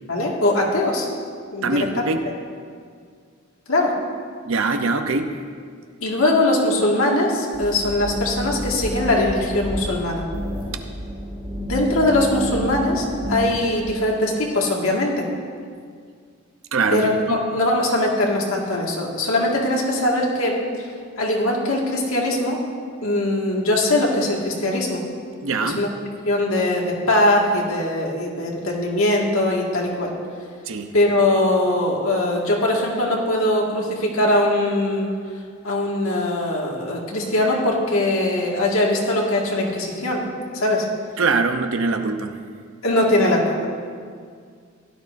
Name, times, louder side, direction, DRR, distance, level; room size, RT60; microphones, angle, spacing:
voice 1, 0.1-1.1 1.5-2.0 3.7-4.0 6.0-10.2 11.6-15.3 16.9-20.6 21.2-22.6 23.0-25.0 25.6-25.9 26.3-30.1 30.9-35.2 35.6-40.2 40.5-40.9 42.8-43.7, left 1 dB, 75° left, -2 dB, 2.0 m, -21 dB
voice 2, 1.6-2.2 4.5-5.3 16.7-17.4 25.4-25.8 30.7-30.9 41.2-42.4, right 3 dB, 70° right, 6 dB, 0.8 m, -22 dB
sound 1, 7.5-13.9, equal, 25° right, 2.3 m, -29 dB
16.5 x 12.0 x 2.6 m, 2.1 s
head